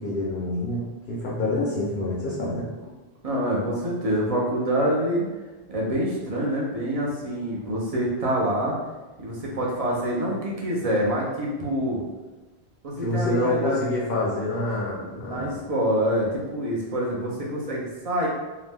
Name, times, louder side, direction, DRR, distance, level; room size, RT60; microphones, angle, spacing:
voice 1, 0.0-2.7 9.9-10.0 13.0-15.6, left 1 dB, 65° left, -6 dB, 0.9 m, -27 dB
voice 2, 3.2-5.2 5.7-8.8 9.2-12.0 12.8-13.9 15.0-18.3, equal, 45° right, -4 dB, 0.6 m, -26 dB
2.8 x 2.1 x 3.3 m, 1.2 s
omnidirectional pair, 1.1 m